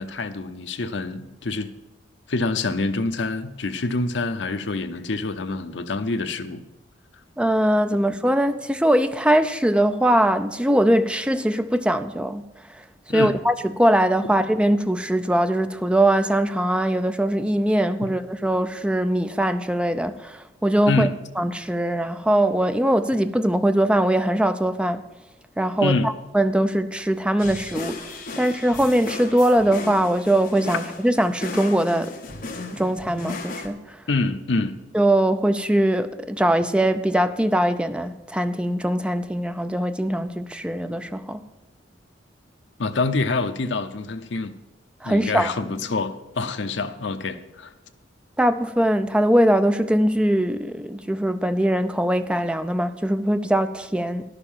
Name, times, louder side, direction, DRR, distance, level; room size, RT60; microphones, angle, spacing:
voice 1, 0.0-1.7 2.3-6.6 13.1-13.3 20.9-21.1 25.8-26.1 34.1-34.8 42.8-44.5 45.0-47.7, left 3 dB, 70° left, 0.8 m, -26 dB
voice 2, 7.4-12.4 12.8-21.1 21.4-25.0 25.6-32.1 32.7-34.0 34.9-41.4 45.0-45.5 48.4-54.2, right 1 dB, 5° right, 0.4 m, -21 dB
sound 1, 27.4-33.7, left 3 dB, 50° left, 1.3 m, -36 dB
11.5 x 6.7 x 7.3 m
head